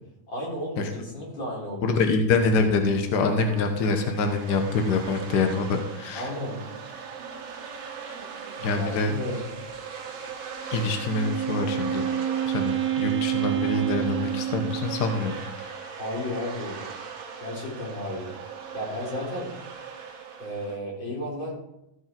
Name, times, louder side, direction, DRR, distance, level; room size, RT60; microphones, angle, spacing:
voice 1, 0.3-2.0 6.1-6.6 8.8-9.4 15.9-16.8 17.4-18.3 18.7-19.5 20.4-21.5, left 1 dB, 40° left, -5 dB, 4.6 m, -33 dB
voice 2, 1.8-6.3 8.6-9.1 10.7-12.0 12.5-15.9, left 3 dB, 70° left, 5 dB, 1.0 m, -25 dB
sound 1, 2.9-20.8, right 6 dB, 60° right, 2.3 m, -39 dB
Wind instrument woodwind instrument, 10.9-15.3, right 11 dB, 90° right, 2.5 m, -28 dB
14.5 x 6.5 x 4.5 m, 0.85 s
omnidirectional pair, 3.4 m